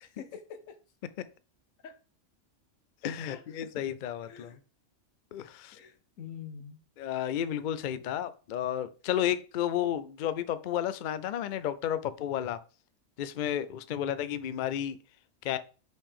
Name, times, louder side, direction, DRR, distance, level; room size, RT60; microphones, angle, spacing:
voice 1, 0.0-0.8 1.8-2.0 3.3-3.8 4.3-4.6 5.7-6.8 8.0-8.1, left 7 dB, 90° left, 9 dB, 1.2 m, -46 dB
voice 2, 3.0-4.6 5.3-5.8 7.0-12.6 13.2-15.0 15.4-15.6, left 10 dB, 70° left, 14 dB, 0.4 m, -32 dB
5.2 x 4.9 x 3.6 m, 0.35 s
omnidirectional pair, 1.3 m